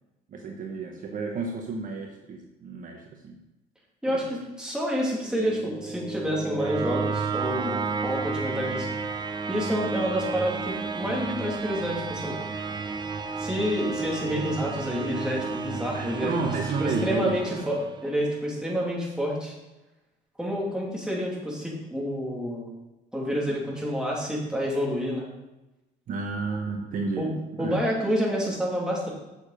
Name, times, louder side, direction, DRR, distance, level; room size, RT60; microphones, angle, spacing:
voice 1, 0.3-3.4 4.1-4.3 15.9-17.6 26.1-27.8, right 4 dB, 50° right, 2 dB, 1.1 m, -32 dB
voice 2, 4.0-7.8 8.0-8.9 9.5-12.4 13.4-16.3 16.8-17.8 18.0-19.5 20.4-22.7 23.1-25.3 27.2-27.3 27.6-29.1, equal, 5° right, -4 dB, 2.8 m, -28 dB
sound 1, 5.2-18.3, right 4 dB, 25° right, 0.7 m, -32 dB
7.0 x 6.8 x 5.0 m, 1.0 s
cardioid pair, 110°, 17 cm